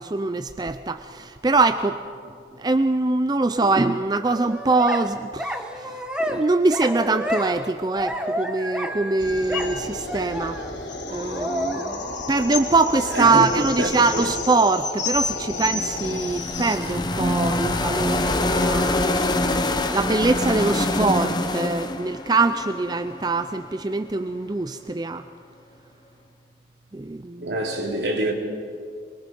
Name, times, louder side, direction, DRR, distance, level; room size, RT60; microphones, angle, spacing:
voice 1, 0.0-2.0 2.6-10.6 11.1-12.0 12.3-19.0 19.9-25.2 26.9-27.5, right 3 dB, 20° right, 0.4 m, -23 dB
sound 1, 4.3-5.1 5.4-6.4 6.7-7.7 7.9-10.7 11.2-12.1, equal, 5° right, 1.1 m, -30 dB
sound 2, 9.2-16.8, left 3 dB, 90° left, 3.4 m, -31 dB
voice 2, 13.1-14.3 27.4-28.3, right 1 dB, 70° right, 2.9 m, -26 dB
sound 3, 15.5-23.5, left 2 dB, 25° left, 0.9 m, -25 dB
23.0 x 22.5 x 5.4 m
head